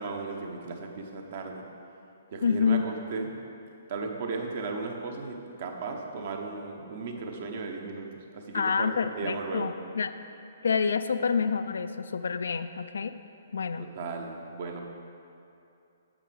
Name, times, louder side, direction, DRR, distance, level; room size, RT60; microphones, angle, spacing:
voice 1, 0.0-1.6 2.3-3.3 3.9-9.7 13.8-14.8, right 4 dB, 50° right, 3 dB, 0.9 m, -36 dB
voice 2, 2.4-2.9 8.5-10.1 10.6-13.1 13.5-13.9, left 6 dB, 65° left, 11 dB, 0.3 m, -28 dB
8.8 x 7.4 x 3.4 m, 2.7 s
figure-of-eight pair, 125°, 0 cm